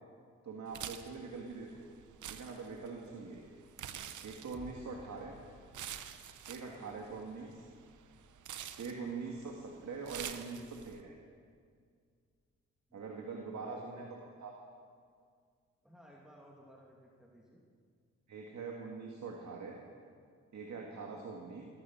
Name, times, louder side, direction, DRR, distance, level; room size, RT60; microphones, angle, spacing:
voice 1, 0.4-1.8 2.3-3.4 4.2-5.4 6.5-7.6 8.8-11.1 12.9-14.5 18.3-19.8 20.5-21.6, right 4 dB, 70° right, 0 dB, 2.0 m, -43 dB
sound 1, 0.7-11.0, right 9 dB, 90° right, 0.8 m, -48 dB
voice 2, 3.0-3.4 6.6-6.8 8.8-9.1 12.9-13.0 13.6-14.1 15.8-17.6 21.0-21.2, equal, ahead, -3 dB, 2.6 m, -59 dB
sound 2, 4.5-13.1 13.6-13.7, left 2 dB, 15° left, 2.5 m, -62 dB
18.5 x 14.0 x 5.7 m, 2.1 s
cardioid pair, 65°, 30 cm